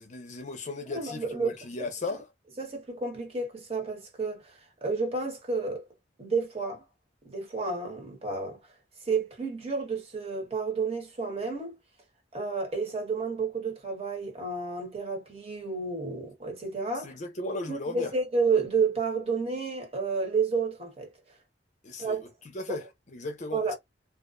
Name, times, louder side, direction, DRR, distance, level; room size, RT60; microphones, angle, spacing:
voice 1, 0.0-2.3 17.0-18.1 21.8-23.7, left 2 dB, 45° left, 0.5 m, -36 dB
voice 2, 0.9-1.6 2.6-4.4 4.8-5.8 6.2-6.8 7.2-8.6 9.1-11.7 12.3-17.1 17.7-21.1 22.0-22.2 23.5-23.8, right 4 dB, 35° right, 1.0 m, -30 dB
2.4 x 2.1 x 2.4 m
head